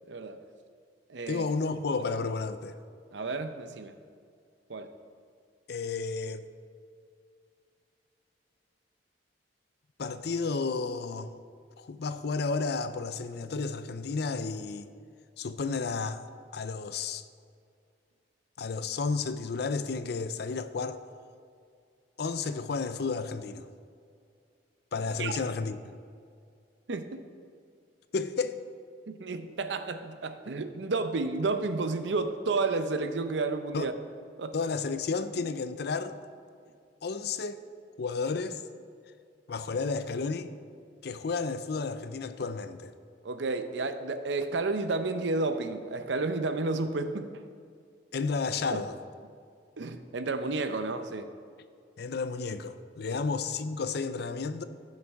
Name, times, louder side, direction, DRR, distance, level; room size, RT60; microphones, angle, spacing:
voice 1, 0.1-0.4 1.1-1.5 3.1-4.0 4.7-4.9 25.0-25.4 26.9-27.2 29.1-33.9 34.4-34.6 43.2-47.3 48.7-48.8 49.8-51.3 53.1-53.2, right 3 dB, 80° right, 0.7 m, -31 dB
voice 2, 1.3-2.8 5.7-6.5 10.0-11.3 11.8-14.9 15.4-16.2 16.5-17.2 18.6-21.0 22.2-23.7 24.9-25.8 28.1-28.6 33.7-33.9 34.5-36.2 37.0-37.6 38.0-38.6 39.5-40.5 41.0-42.9 48.1-48.9 52.0-54.6, left 4 dB, 65° left, 0.5 m, -32 dB
15.0 x 6.5 x 3.6 m
head